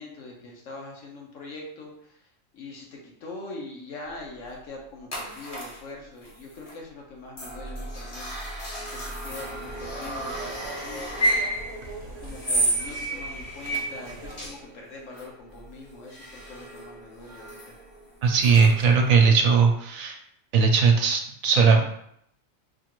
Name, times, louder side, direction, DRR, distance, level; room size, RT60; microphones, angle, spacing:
voice 1, 0.0-2.3 2.5-8.3 8.9-11.4 12.0-17.8, left 2 dB, 65° left, -1 dB, 1.2 m, -42 dB
sound 1, 5.1-5.8 6.2-6.8 7.4-19.1, right 1 dB, 35° left, 0.8 m, -32 dB
sound 2, 9.3-14.5, right 2 dB, 50° right, 0.5 m, -42 dB
voice 2, 18.2-20.2 20.5-21.9, right 5 dB, 75° right, 3 dB, 1.0 m, -19 dB
4.8 x 2.4 x 3.0 m, 0.71 s
omnidirectional pair, 1.4 m